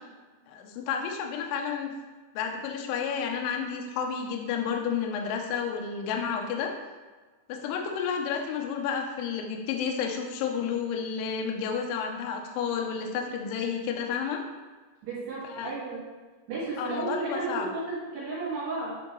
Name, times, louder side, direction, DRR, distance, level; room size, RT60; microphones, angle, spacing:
voice 1, 0.5-1.9 2.3-6.7 7.5-14.4 15.5-15.7 16.8-17.7, left 6 dB, 80° left, 2 dB, 2.5 m, -31 dB
voice 2, 15.0-16.0 16.5-19.0, right 3 dB, 65° right, -7 dB, 3.2 m, -33 dB
10.5 x 3.7 x 3.0 m, 1.3 s
omnidirectional pair, 5.7 m